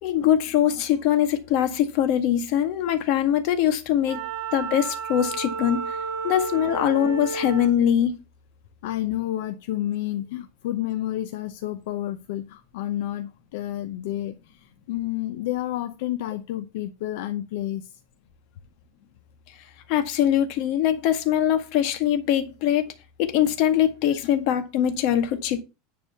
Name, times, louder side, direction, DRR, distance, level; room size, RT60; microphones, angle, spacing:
voice 1, 0.0-4.2 4.5-6.0 6.2-8.1 19.9-22.8 23.2-25.6, left 10 dB, 45° left, 1.7 m, -22 dB
Wind instrument woodwind instrument, 4.0-7.8, right 5 dB, 55° right, 3.0 m, -32 dB
voice 2, 8.8-18.0, left 13 dB, 65° left, 0.8 m, -30 dB
10.5 x 4.1 x 6.9 m
supercardioid pair, 170°, 0 cm